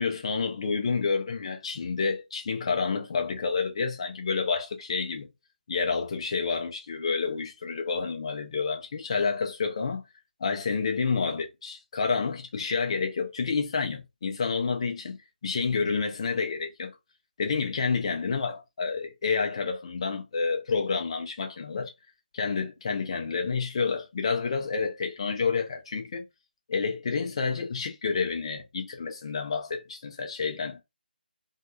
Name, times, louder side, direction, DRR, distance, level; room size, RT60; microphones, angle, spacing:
voice 1, 0.0-5.3 5.7-10.0 10.4-15.2 15.4-16.9 17.4-21.9 22.3-26.3 26.7-30.8, left 5 dB, 35° left, 0.5 m, -29 dB
2.6 x 2.1 x 2.6 m
figure-of-eight pair, 150°, 6 cm